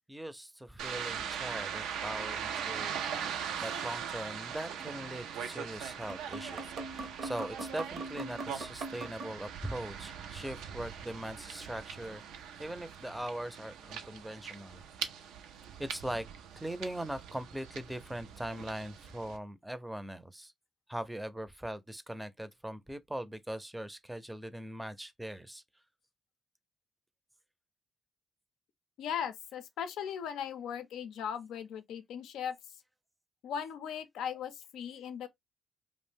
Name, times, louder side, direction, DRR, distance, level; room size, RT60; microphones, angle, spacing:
voice 1, 0.1-3.0 3.2-12.2 12.6-14.8 15.8-16.2 16.6-20.5 20.9-25.6, right 1 dB, 10° right, 0.5 m, -41 dB
sound 1, 0.8-19.4, right 8 dB, 85° right, 0.4 m, -41 dB
sound 2, 1.7-3.0 3.3-3.4 4.8-5.0 5.6-5.7 6.0-9.3, right 3 dB, 65° right, 0.7 m, -42 dB
voice 2, 29.0-32.6 33.4-35.3, left 8 dB, 80° left, 0.4 m, -38 dB
2.5 x 2.0 x 3.4 m
supercardioid pair, 60°, 0 cm